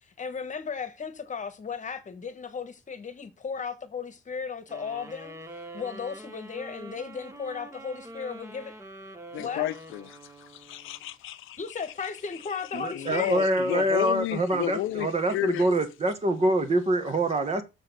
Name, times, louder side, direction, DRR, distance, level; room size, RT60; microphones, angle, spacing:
voice 1, 0.2-5.4 5.7-8.7 9.4-9.7 11.6-13.3, left 6 dB, 40° left, 1.3 m, -35 dB
sound 1, 4.7-11.1, right 1 dB, 15° right, 1.2 m, -45 dB
voice 2, 9.3-12.4 12.7-15.7 17.5-17.6, left 14 dB, 85° left, 0.6 m, -33 dB
voice 3, 12.7-17.6, right 1 dB, 30° right, 1.5 m, -25 dB
6.8 x 4.2 x 6.7 m
cardioid pair, 90°, 20 cm